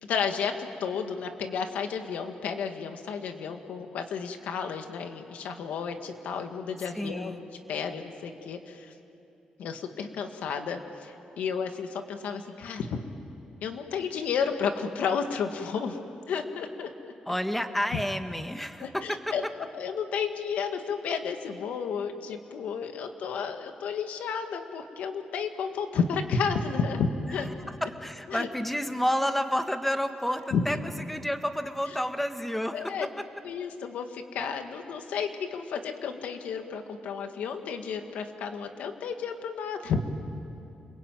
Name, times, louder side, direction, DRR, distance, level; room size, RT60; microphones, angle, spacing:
voice 1, 0.0-7.4 7.7-8.9 9.6-13.0 13.6-16.0 16.3-16.9 18.8-19.4 19.7-27.5 28.3-28.5 30.5-30.6 32.7-33.1 33.4-40.0, left 6 dB, 85° left, 6 dB, 2.0 m, -32 dB
voice 2, 6.9-7.4 17.3-19.2 27.4-27.5 27.8-30.8 31.1-32.9, equal, 5° left, 7 dB, 1.7 m, -30 dB
29.0 x 21.5 x 9.2 m, 2.8 s
cardioid pair, 90°, 2 cm